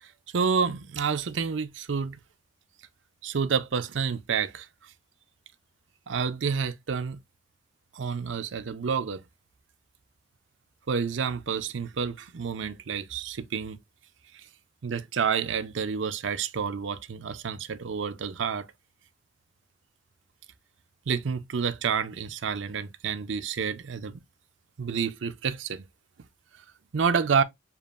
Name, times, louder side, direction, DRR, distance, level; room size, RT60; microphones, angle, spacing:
voice 1, 0.0-2.2 3.2-4.7 6.1-7.2 7.9-9.2 10.9-13.8 14.8-18.7 21.1-24.2 24.8-25.8 26.9-27.4, right 6 dB, 75° right, 0.5 m, -29 dB
7.0 x 2.4 x 2.4 m
head